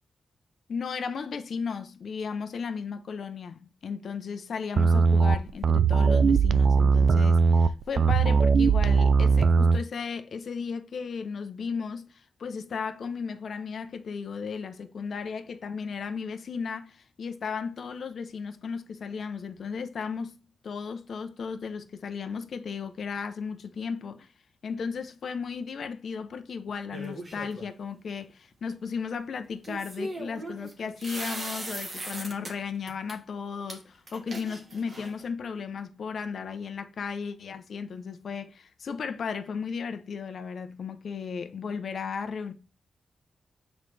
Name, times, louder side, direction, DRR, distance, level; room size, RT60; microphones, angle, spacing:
voice 1, 0.7-20.3 20.6-24.3 24.6-42.5, left 6 dB, 55° left, 0.7 m, -35 dB
sound 1, 4.8-9.8, right 5 dB, 55° right, 0.4 m, -20 dB
sound 2, 26.9-27.7 29.6-32.5 32.9-33.2 33.7-33.8 34.1-35.3, right 1 dB, 25° right, 1.3 m, -38 dB
7.1 x 4.0 x 3.3 m
wide cardioid pair, 170°, 0 cm